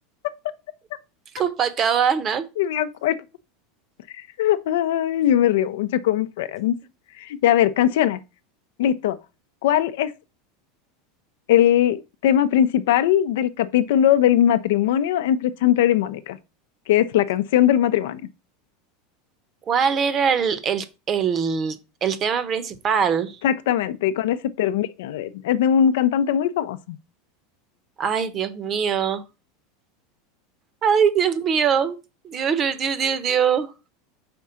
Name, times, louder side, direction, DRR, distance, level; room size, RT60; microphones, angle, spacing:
voice 1, 1.3-2.4 19.7-23.4 28.0-29.2 30.8-32.0 32.2-33.7, right 7 dB, 30° right, 0.7 m, -22 dB
voice 2, 2.6-3.1 4.4-6.7 7.2-8.2 8.8-9.2 9.6-10.1 11.5-16.4 16.9-18.2 23.4-26.8, left 10 dB, 80° left, 0.5 m, -20 dB
5.3 x 3.6 x 5.6 m
supercardioid pair, 150°, 0 cm